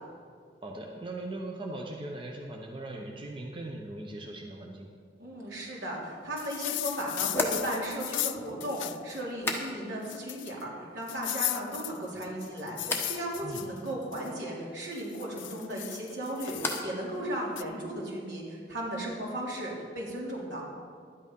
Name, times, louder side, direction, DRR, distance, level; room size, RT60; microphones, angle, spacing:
voice 1, 0.6-4.9 13.4-13.6, right 2 dB, 25° right, 0 dB, 0.8 m, -39 dB
voice 2, 5.2-20.6, right 1 dB, 80° right, -4 dB, 3.0 m, -36 dB
sound 1, 6.4-9.2 9.6-9.7 10.0-10.6 11.1-14.3 14.9-16.8 17.6-17.7, left 16 dB, 85° left, 0.4 m, -36 dB
sound 2, 7.3-10.1 10.4-11.0 11.4-12.0 12.8-13.2 15.6-17.0 17.3-17.9, left 2 dB, 10° left, 1.1 m, -37 dB
11.5 x 9.1 x 5.4 m, 2.1 s
head